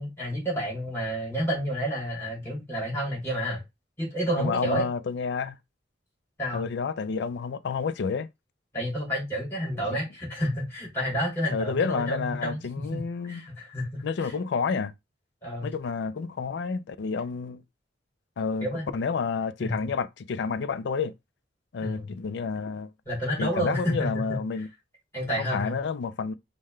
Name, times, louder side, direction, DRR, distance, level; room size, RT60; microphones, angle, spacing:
voice 1, 0.0-3.6 4.0-4.9 6.4-6.6 8.7-12.6 12.9-13.0 13.3-14.3 15.4-15.7 18.6-18.9 19.6-19.9 21.8-22.1 23.1-24.4 25.1-25.7, equal, 15° left, 2.7 m, -30 dB
voice 2, 4.4-5.6 6.5-8.3 11.5-13.4 14.0-14.9 15.6-17.6 18.4-21.1 21.7-22.9 23.4-24.7 25.4-26.3, left 5 dB, 65° left, 0.4 m, -30 dB
5.6 x 2.1 x 3.2 m
head